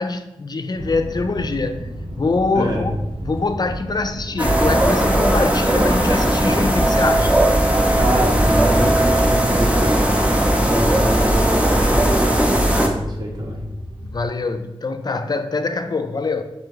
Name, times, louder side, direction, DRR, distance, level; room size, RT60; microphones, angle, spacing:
voice 1, 0.0-2.9 3.2-7.3 14.0-16.4, left 3 dB, 45° left, 0.3 m, -24 dB
sound 1, 0.7-14.3, right 1 dB, 85° right, 0.6 m, -34 dB
voice 2, 2.5-2.9 8.0-10.2 10.5-13.7, right 1 dB, 45° right, 0.9 m, -25 dB
sound 2, 4.4-12.9, right 1 dB, 15° right, 0.6 m, -17 dB
3.7 x 2.8 x 3.6 m
wide cardioid pair, 75°, 10 cm